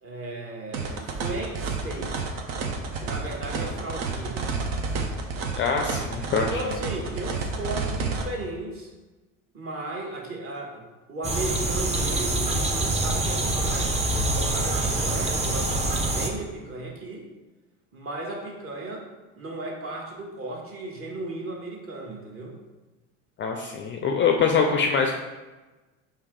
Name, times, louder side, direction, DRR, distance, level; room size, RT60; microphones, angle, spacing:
voice 1, 0.0-2.2 3.0-4.5 6.4-8.9 9.5-17.3 17.9-19.1 19.4-22.6, right 2 dB, 35° right, -1 dB, 1.1 m, -35 dB
sound 1, 0.7-8.2, right 4 dB, 65° right, 0.8 m, -30 dB
voice 2, 5.6-6.8 23.4-25.1, left 5 dB, 30° left, 3 dB, 0.4 m, -24 dB
sound 2, 11.2-16.3, right 2 dB, 15° right, 0.6 m, -25 dB
4.6 x 2.8 x 3.6 m, 1.2 s
hypercardioid pair, 80°, 40 cm